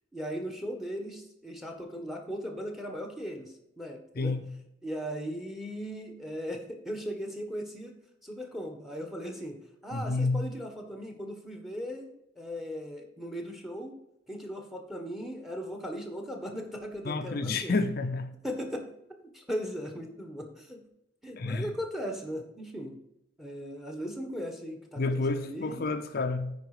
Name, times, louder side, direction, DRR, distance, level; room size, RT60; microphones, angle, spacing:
voice 1, 0.1-4.3 4.8-7.9 8.2-14.0 14.3-17.8 18.4-18.8 19.3-20.8 21.2-23.0 23.4-25.9, equal, ahead, 3 dB, 1.3 m, -38 dB
voice 2, 4.2-4.5 9.9-10.5 17.0-18.3 21.4-21.7 25.0-26.5, left 3 dB, 55° left, 6 dB, 0.6 m, -29 dB
9.4 x 4.8 x 4.9 m, 0.85 s
head